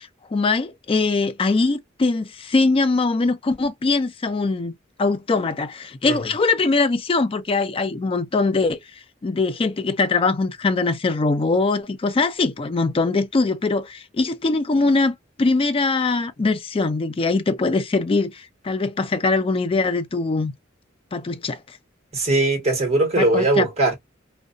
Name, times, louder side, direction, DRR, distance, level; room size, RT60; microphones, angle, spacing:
voice 1, 0.0-4.7 5.0-8.8 9.2-20.5 21.1-21.8 23.2-23.7, left 3 dB, 30° left, 0.4 m, -22 dB
voice 2, 22.1-24.0, right 2 dB, 35° right, 1.2 m, -20 dB
2.4 x 2.2 x 2.4 m
head